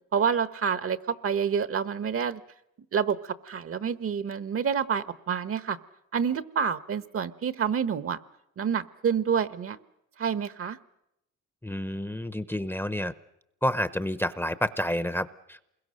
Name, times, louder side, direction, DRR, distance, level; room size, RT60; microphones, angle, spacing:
voice 1, 0.1-2.4 2.9-5.8 6.1-8.2 8.6-9.8 10.2-10.8, right 7 dB, 50° right, 14 dB, 1.1 m, -28 dB
voice 2, 11.6-13.1 13.6-15.7, equal, 5° left, 14 dB, 0.8 m, -29 dB
28.0 x 22.0 x 6.5 m, 0.84 s
cardioid pair, 90°, 30 cm